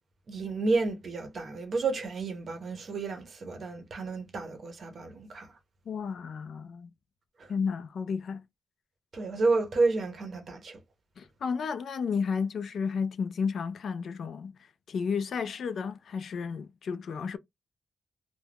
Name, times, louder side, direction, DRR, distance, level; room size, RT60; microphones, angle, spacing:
voice 1, 0.3-5.5 7.4-7.5 9.1-10.8, right 3 dB, 45° right, 0.7 m, -30 dB
voice 2, 5.9-6.9 7.5-8.4 11.2-14.5 14.9-17.4, left 6 dB, 55° left, 0.4 m, -32 dB
2.4 x 2.1 x 3.3 m
wide cardioid pair, 175°, 0 cm